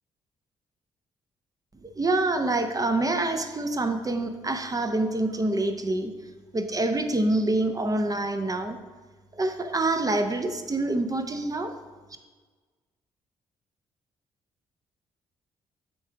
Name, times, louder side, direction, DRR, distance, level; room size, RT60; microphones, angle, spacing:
voice 1, 1.8-6.1 6.5-8.8 9.4-11.7, right 2 dB, 25° right, 7 dB, 0.7 m, -26 dB
7.1 x 3.3 x 4.7 m, 1.4 s
figure-of-eight pair, 40°, 15 cm